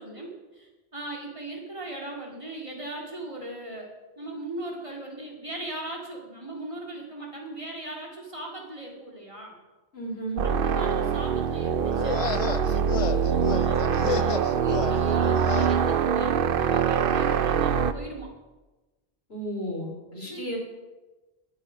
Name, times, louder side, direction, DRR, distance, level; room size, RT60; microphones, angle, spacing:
voice 1, 0.0-9.5 10.4-18.3 20.2-20.5, right 2 dB, 30° right, -1 dB, 2.3 m, -39 dB
voice 2, 9.9-10.4 19.3-20.6, right 1 dB, 75° left, 0 dB, 3.2 m, -33 dB
sound 1, 10.4-17.9, right 7 dB, 65° right, 0.8 m, -24 dB
sound 2, 11.9-15.8, left 6 dB, 50° left, 0.4 m, -32 dB
12.5 x 8.8 x 5.0 m, 1.2 s
omnidirectional pair, 1.0 m